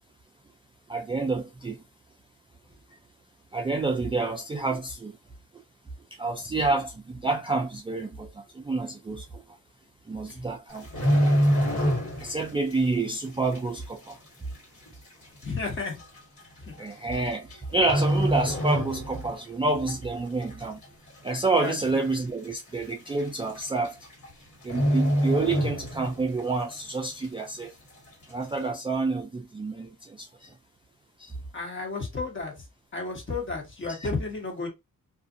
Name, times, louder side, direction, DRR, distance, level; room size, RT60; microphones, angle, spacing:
voice 1, 0.9-1.8 3.5-5.2 6.2-9.6 10.1-10.9 12.2-14.2 16.8-20.8 21.2-24.0 24.6-27.7 28.3-30.5 31.2-31.4 33.9-34.1, right 3 dB, 15° right, 0.3 m, -28 dB
sound 1, 10.7-12.4 12.7-13.0 13.5-13.6 14.5-14.6 14.9-15.0 15.8-16.0 17.1-17.5 17.8-19.4 19.7-19.9 20.4-20.9 21.3-21.4 21.6-21.7 22.1-22.2 23.2-23.3 23.6-23.9 24.1-24.3 24.6-26.3 26.6-26.7, equal, 55° left, 1.7 m, -25 dB
voice 2, 15.4-16.0 16.7-16.8 21.6-21.7 31.5-32.5 32.9-34.7, left 3 dB, 35° left, 1.1 m, -32 dB
2.5 x 2.4 x 2.5 m
wide cardioid pair, 135°, 34 cm